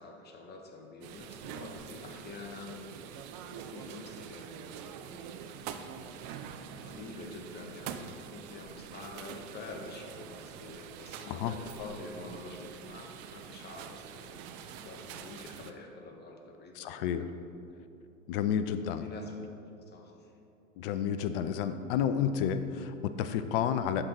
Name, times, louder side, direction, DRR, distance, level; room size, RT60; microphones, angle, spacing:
voice 1, 0.0-6.0 6.8-17.5 19.0-19.4 19.8-20.3, left 3 dB, 25° left, 3 dB, 1.0 m, -47 dB
sound 1, 1.0-15.7, right 8 dB, 30° right, 0.4 m, -45 dB
voice 2, 16.8-17.2 18.3-19.1 20.8-24.0, left 8 dB, 40° left, 11 dB, 0.5 m, -30 dB
11.0 x 3.9 x 4.7 m, 2.8 s
figure-of-eight pair, 90°, 43 cm